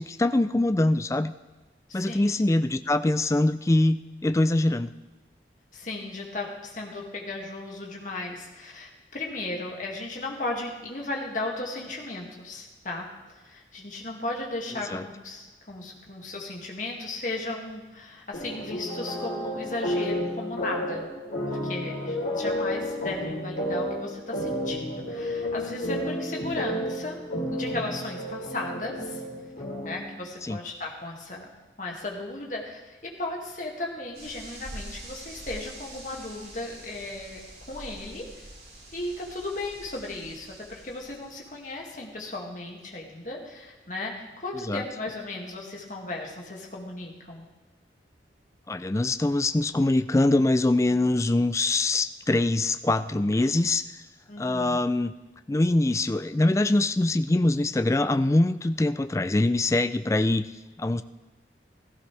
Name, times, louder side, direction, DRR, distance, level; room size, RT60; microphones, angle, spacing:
voice 1, 0.0-1.3 1.9-4.9 14.9-15.0 30.4-30.6 44.7-44.8 48.7-53.9 54.4-55.1 55.5-60.5 60.8-61.0, left 2 dB, 15° left, 12 dB, 0.3 m, -23 dB
voice 2, 1.9-2.3 5.7-13.1 13.4-21.1 21.5-27.2 27.5-29.2 29.8-31.5 31.8-37.4 37.7-38.3 38.9-47.4 54.3-54.8, left 2 dB, 45° left, -1 dB, 2.2 m, -35 dB
sound 1, 18.3-30.1, equal, 80° left, 3.7 m, -31 dB
sound 2, 34.1-41.6, right 1 dB, 65° right, 5.1 m, -45 dB
16.0 x 14.0 x 3.4 m, 1.2 s
head